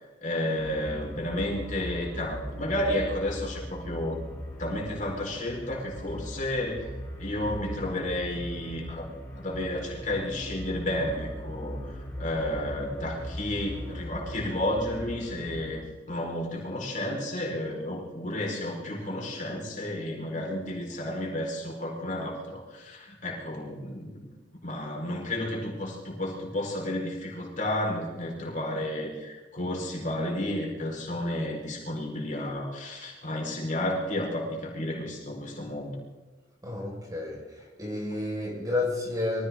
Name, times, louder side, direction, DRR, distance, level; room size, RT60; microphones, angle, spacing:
voice 1, 0.2-4.2 4.6-6.9 7.2-15.8 16.1-24.3 24.6-36.0, left 1 dB, 45° left, -2 dB, 4.5 m, -32 dB
sound 1, 0.6-15.8, equal, 10° left, 4.2 m, -39 dB
voice 2, 36.6-39.5, left 2 dB, 20° right, -1 dB, 4.9 m, -31 dB
24.5 x 16.0 x 3.7 m, 1.2 s
head